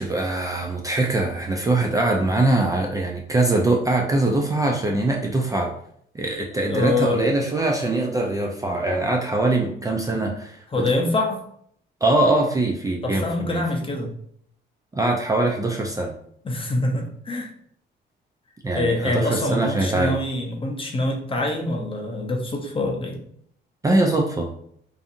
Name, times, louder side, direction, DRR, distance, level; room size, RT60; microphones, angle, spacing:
voice 1, 0.0-5.7 6.1-10.8 12.0-13.6 14.9-16.1 18.6-20.1 23.8-24.5, right 2 dB, 15° right, 0 dB, 0.3 m, -22 dB
voice 2, 6.5-7.2 8.7-8.8 10.7-11.4 13.0-14.1 16.4-17.5 18.7-23.2, left 2 dB, 25° left, 1 dB, 0.6 m, -25 dB
2.6 x 2.6 x 2.5 m, 0.67 s
cardioid pair, 90°, 20 cm